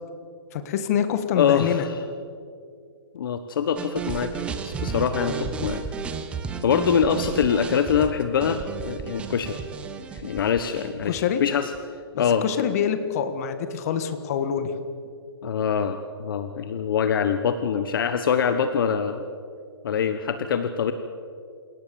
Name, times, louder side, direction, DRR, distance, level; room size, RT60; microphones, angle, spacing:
voice 1, 0.5-1.9 11.1-11.4 12.4-14.7, left 8 dB, 35° left, 9 dB, 1.7 m, -25 dB
voice 2, 1.4-1.9 3.1-4.3 4.6-5.8 6.6-9.6 10.1-11.7 12.1-12.4 15.4-19.3 19.8-20.9, left 7 dB, 55° left, 9 dB, 1.2 m, -24 dB
sound 1, 3.8-11.8, right 6 dB, 10° right, 0.9 m, -33 dB
28.5 x 17.5 x 7.0 m, 2.3 s
hypercardioid pair, 165°, 14 cm